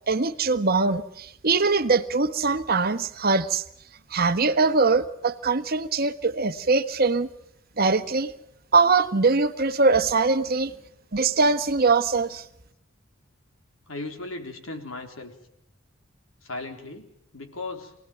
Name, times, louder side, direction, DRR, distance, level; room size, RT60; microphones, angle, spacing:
voice 1, 0.1-3.6 4.1-7.3 7.8-8.3 8.7-10.7 11.1-12.4, right 4 dB, 45° right, 10 dB, 1.2 m, -22 dB
voice 2, 13.9-15.3 16.4-17.9, left 2 dB, 80° left, 4 dB, 3.9 m, -37 dB
27.0 x 18.5 x 9.2 m, 0.78 s
head